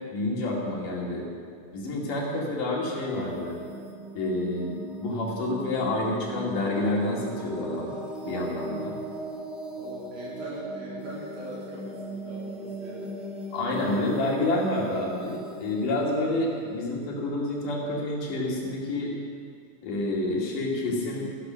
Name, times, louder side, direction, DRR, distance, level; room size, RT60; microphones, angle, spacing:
voice 1, 0.1-1.3 1.7-3.6 4.1-7.9 8.2-9.0 13.5-19.1 19.8-21.3, left 2 dB, 70° left, -2 dB, 3.9 m, -28 dB
sound 1, 3.0-17.6, right 1 dB, ahead, 0.3 m, -39 dB
voice 2, 9.8-13.1 14.5-14.6 15.9-16.0, equal, 80° right, -6 dB, 5.4 m, -41 dB
14.5 x 11.0 x 6.3 m, 2.2 s
omnidirectional pair, 4.0 m